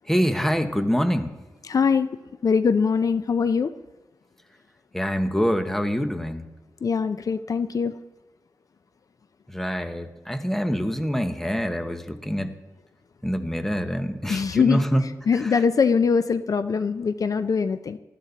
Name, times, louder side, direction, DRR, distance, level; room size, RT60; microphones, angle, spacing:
voice 1, 0.1-1.3 4.9-6.4 9.5-12.5 13.2-15.1 15.3-15.6, equal, 5° left, 8 dB, 1.1 m, -25 dB
voice 2, 1.6-2.1 2.4-3.7 6.8-8.0 14.3-14.9 15.3-18.0, left 5 dB, 55° left, 12 dB, 0.5 m, -22 dB
19.5 x 14.0 x 4.1 m, 1.1 s
wide cardioid pair, 115°, 7 cm